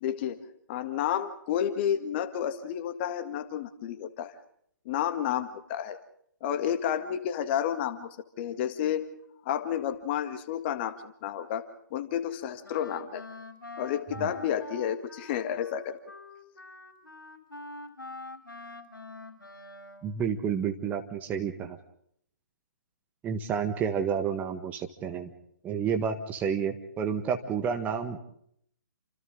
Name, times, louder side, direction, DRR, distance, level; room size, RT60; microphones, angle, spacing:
voice 1, 0.0-0.4 0.7-4.3 4.9-6.0 6.4-9.1 9.5-11.6 11.9-13.2 13.8-16.0, left 9 dB, 30° left, 10 dB, 1.9 m, -31 dB
Wind instrument woodwind instrument, 12.6-20.2, left 2 dB, 85° left, 3.6 m, -45 dB
voice 2, 20.0-21.8 23.2-25.3 25.6-28.2, right 7 dB, 15° right, 6 dB, 1.5 m, -30 dB
29.0 x 27.0 x 3.8 m, 0.68 s
figure-of-eight pair, 135°, 11 cm